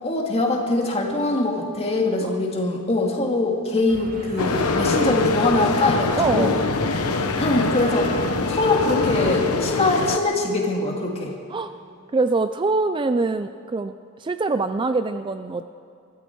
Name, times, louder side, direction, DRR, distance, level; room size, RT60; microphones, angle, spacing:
voice 1, 0.0-6.6 7.4-8.1 8.5-11.3, left 2 dB, 25° left, 0 dB, 2.3 m, -22 dB
sound 1, 3.9-9.5, right 1 dB, 40° right, 2.3 m, -36 dB
sound 2, 4.4-10.2, left 3 dB, 70° left, 1.0 m, -24 dB
voice 2, 6.2-6.6 11.5-11.7 12.1-13.9 14.2-15.6, right 3 dB, 20° right, 10 dB, 0.4 m, -23 dB
23.5 x 13.5 x 4.6 m, 2.5 s
head